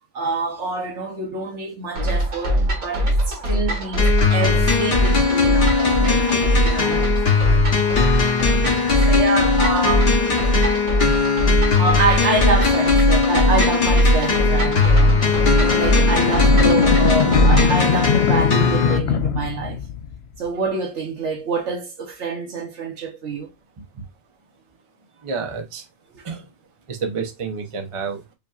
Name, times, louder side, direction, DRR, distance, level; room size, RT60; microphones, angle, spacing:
voice 1, 0.1-4.0 4.3-7.1 8.9-10.3 11.8-15.1 15.5-19.8 20.4-23.5 26.1-26.2, right 3 dB, 55° right, 1.1 m, -26 dB
sound 1, 2.0-17.8, equal, 85° right, 2.1 m, -20 dB
sound 2, 4.0-19.0, left 5 dB, 50° left, 1.0 m, -20 dB
sound 3, 14.5-20.4, left 8 dB, 65° left, 0.7 m, -23 dB
voice 2, 25.2-25.8 26.2-26.5 26.9-28.2, right 5 dB, 35° right, 0.6 m, -29 dB
5.3 x 2.9 x 2.4 m
omnidirectional pair, 1.5 m